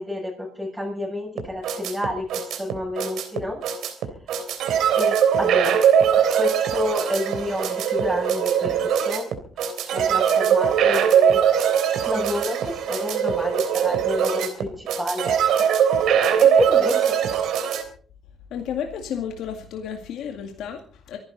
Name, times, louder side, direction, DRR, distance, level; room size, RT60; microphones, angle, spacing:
voice 1, 0.0-3.6 4.9-5.8 6.1-9.3 9.9-11.4 12.1-15.7 16.4-17.2, left 1 dB, 5° right, -4 dB, 7.2 m, -30 dB
sound 1, 1.4-17.8, right 8 dB, 80° right, 3.3 m, -21 dB
voice 2, 18.5-21.2, left 8 dB, 80° left, 4 dB, 2.1 m, -32 dB
25.0 x 11.5 x 4.1 m, 0.43 s
cardioid pair, 90°, 0 cm